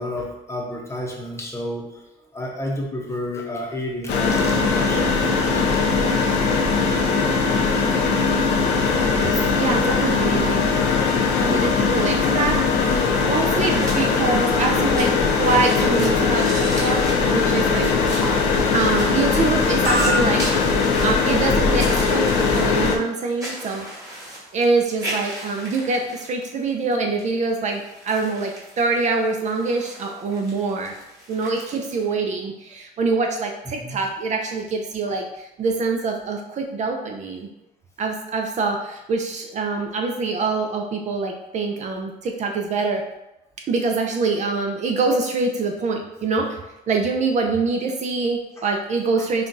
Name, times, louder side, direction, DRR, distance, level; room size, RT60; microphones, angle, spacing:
voice 1, 0.0-1.9 2.3-5.8 9.3-9.5 33.7-34.0 49.2-49.3, left 1 dB, 15° left, -1 dB, 0.8 m, -31 dB
sound 1, 4.1-23.0, left 4 dB, 80° left, 0.6 m, -20 dB
voice 2, 9.5-10.6 11.4-12.8 13.2-15.1 15.4-17.0 17.3-17.9 18.7-23.9 24.5-31.0 31.3-37.5 38.0-43.0 43.7-46.6 46.9-49.5, right 3 dB, 45° right, 3 dB, 0.5 m, -24 dB
sound 2, 12.8-14.3 14.7-26.9 27.2-32.0, equal, 20° right, 1.4 m, -33 dB
5.6 x 2.3 x 2.6 m, 0.90 s
cardioid pair, 110°, 17 cm